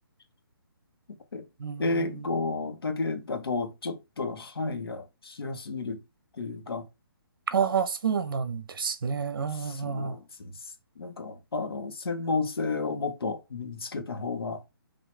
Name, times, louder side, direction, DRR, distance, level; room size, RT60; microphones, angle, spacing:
voice 1, 1.1-1.4 1.8-6.0 6.3-6.9 9.5-10.6 11.0-14.6, left 3 dB, 80° left, 1.4 m, -32 dB
voice 2, 1.6-2.1 7.5-10.1, right 6 dB, 65° right, 0.9 m, -29 dB
5.4 x 2.8 x 3.4 m
hypercardioid pair, 160°, 12 cm